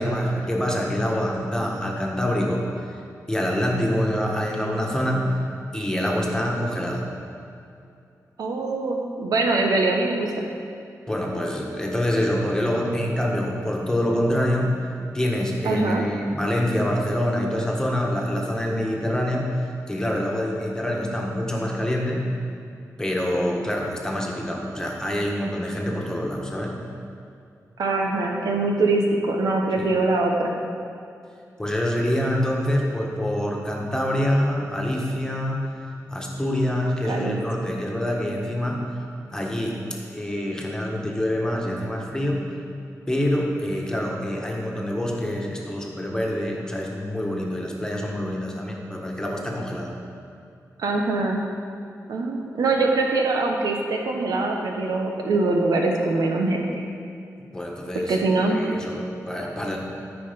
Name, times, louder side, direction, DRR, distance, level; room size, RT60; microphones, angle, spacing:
voice 1, 0.0-3.0 3.3-5.3 5.7-7.0 11.1-14.8 15.1-19.6 19.9-22.3 23.0-26.7 31.6-35.6 36.1-38.8 39.3-42.4 43.1-49.9 57.5-58.2 58.4-59.8, equal, 10° left, -1 dB, 1.6 m, -26 dB
voice 2, 8.4-10.5 15.6-16.0 27.8-30.5 37.0-37.7 50.8-51.4 52.1-56.8 58.1-58.6, right 2 dB, 90° right, 1 dB, 1.0 m, -23 dB
13.0 x 5.0 x 5.3 m, 2.5 s
cardioid pair, 80°, 6 cm